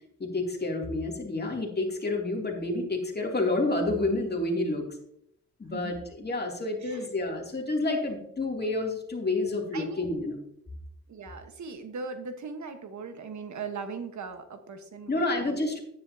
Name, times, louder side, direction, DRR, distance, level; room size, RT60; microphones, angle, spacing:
voice 1, 0.2-4.9 5.6-10.3 15.1-15.8, left 2 dB, 35° left, 0 dB, 2.7 m, -29 dB
voice 2, 6.8-7.1 7.9-8.0 9.7-10.0 11.1-15.1 15.4-15.6, right 5 dB, 70° right, 7 dB, 1.3 m, -39 dB
10.0 x 9.9 x 2.8 m, 0.74 s
cardioid pair, 80°, 30 cm